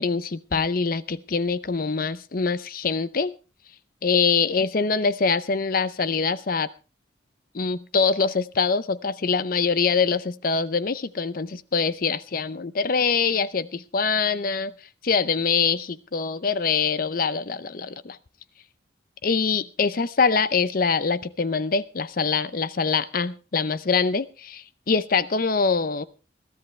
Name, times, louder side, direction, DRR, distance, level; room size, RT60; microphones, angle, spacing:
voice 1, 0.0-3.3 4.0-6.7 7.5-14.7 15.0-18.2 19.2-26.0, left 5 dB, 50° left, 16 dB, 0.6 m, -24 dB
21.0 x 13.0 x 3.3 m, 0.32 s
head